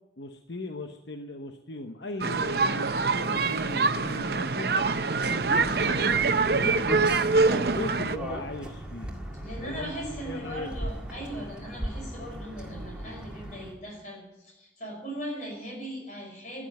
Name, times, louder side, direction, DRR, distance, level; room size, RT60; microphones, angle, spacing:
voice 1, 0.2-4.7 5.3-7.0 7.5-9.1 9.6-10.7, left 2 dB, 75° left, 5 dB, 1.0 m, -38 dB
sound 1, 2.2-8.2, right 4 dB, 55° right, 0.7 m, -25 dB
sound 2, 5.2-13.7, equal, 5° right, 1.9 m, -38 dB
voice 2, 9.4-16.7, right 1 dB, 40° left, 1 dB, 5.4 m, -39 dB
13.0 x 10.0 x 9.5 m, 0.94 s
head